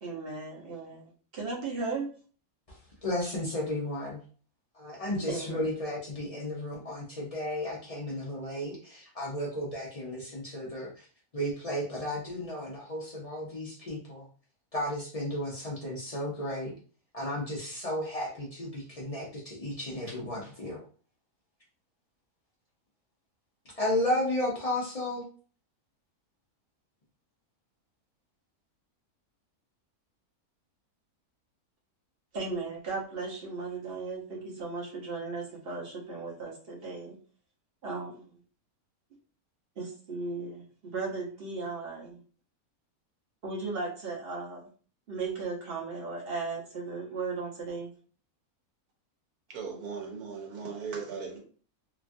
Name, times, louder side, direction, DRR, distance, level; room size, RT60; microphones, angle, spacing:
voice 1, 0.0-2.1 5.3-5.7 32.3-37.1 37.8-38.4 39.8-42.2 43.4-44.7 45.1-47.9, right 3 dB, 45° right, -3 dB, 1.0 m, -36 dB
voice 2, 2.7-4.2 4.7-11.1 11.3-14.3 14.7-16.7 17.1-20.8 23.7-25.2, left 1 dB, 65° left, -4 dB, 0.3 m, -33 dB
voice 3, 49.5-51.4, right 5 dB, 90° right, 1 dB, 1.3 m, -38 dB
3.0 x 2.3 x 2.5 m, 0.41 s
omnidirectional pair, 1.6 m